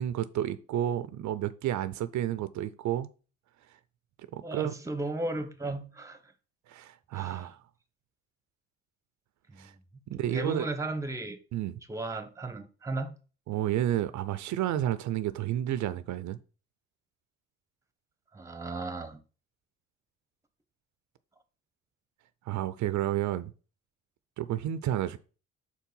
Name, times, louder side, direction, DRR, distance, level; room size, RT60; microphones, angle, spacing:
voice 1, 0.0-3.1 4.3-4.7 6.7-7.6 9.6-9.7 10.1-10.7 11.5-11.8 13.5-16.4 22.5-23.5 24.4-25.2, right 12 dB, 70° right, 0.5 m, -31 dB
voice 2, 4.4-6.2 7.1-7.5 9.5-9.7 10.3-11.4 11.9-13.1 18.3-19.2, right 2 dB, 10° right, 0.9 m, -35 dB
4.6 x 4.2 x 5.4 m
cardioid pair, 90°, 30 cm